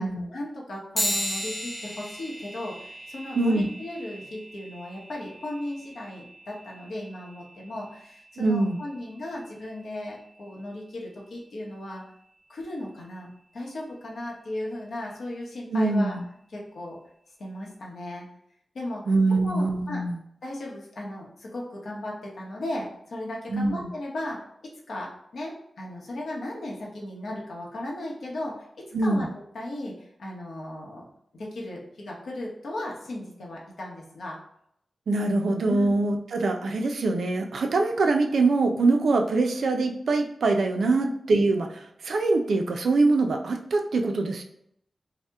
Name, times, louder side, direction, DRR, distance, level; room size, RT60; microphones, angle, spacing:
voice 1, 0.0-12.0 12.5-16.2 16.5-17.0 17.4-18.3 18.7-19.0 19.3-20.0 20.4-29.3 29.5-31.1 31.3-34.4 35.7-35.9 40.9-41.1, left 1 dB, 80° left, -3 dB, 0.7 m, -36 dB
sound 1, 1.0-10.8, equal, 10° left, 0.6 m, -37 dB
voice 2, 3.3-3.7 8.4-8.8 15.7-16.2 19.1-20.2 23.5-23.9 28.9-29.3 35.1-44.4, right 3 dB, 85° right, 4 dB, 0.3 m, -24 dB
2.8 x 2.0 x 3.4 m, 0.72 s
wide cardioid pair, 165°, 0 cm